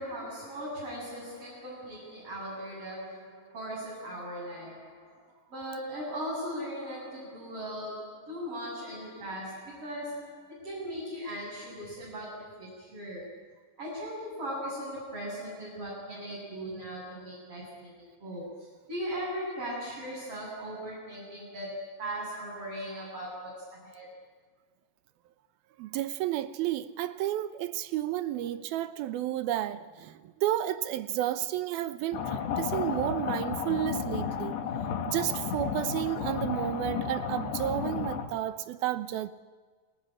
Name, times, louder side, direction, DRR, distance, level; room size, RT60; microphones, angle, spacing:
voice 1, 0.0-13.4 13.8-24.1, equal, 35° right, 8.7 m, -38 dB
voice 2, 25.8-34.6 35.1-39.3, right 13 dB, 70° right, 2.6 m, -31 dB
sound 1, 32.1-38.3, left 7 dB, 80° left, 4.2 m, -33 dB
28.0 x 21.0 x 10.0 m
omnidirectional pair, 4.9 m